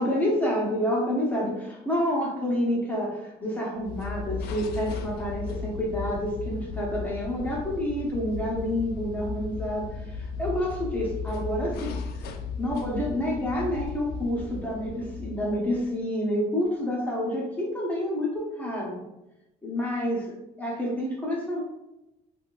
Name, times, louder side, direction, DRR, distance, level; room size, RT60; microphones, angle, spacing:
voice 1, 0.0-12.0 12.6-19.0 19.6-21.6, equal, 10° left, -4 dB, 0.9 m, -28 dB
sound 1, 3.8-15.9, left 4 dB, 70° left, 0.4 m, -36 dB
3.6 x 2.4 x 2.5 m, 0.93 s
cardioid pair, 110°, 17 cm